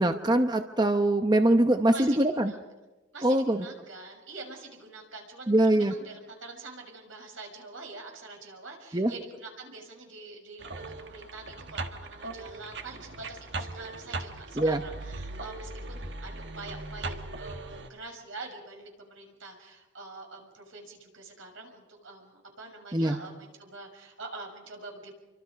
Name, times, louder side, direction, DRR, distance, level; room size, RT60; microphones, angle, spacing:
voice 1, 0.0-2.5 3.2-3.6 5.5-5.9 8.9-9.1 14.6-14.8 22.9-23.2, right 1 dB, 20° right, 6 dB, 0.9 m, -23 dB
voice 2, 1.9-2.6 3.1-25.1, right 3 dB, 80° right, 2 dB, 6.5 m, -45 dB
sound 1, 10.6-17.9, right 2 dB, 60° right, 1.6 m, -39 dB
29.0 x 25.0 x 5.3 m, 1.1 s
head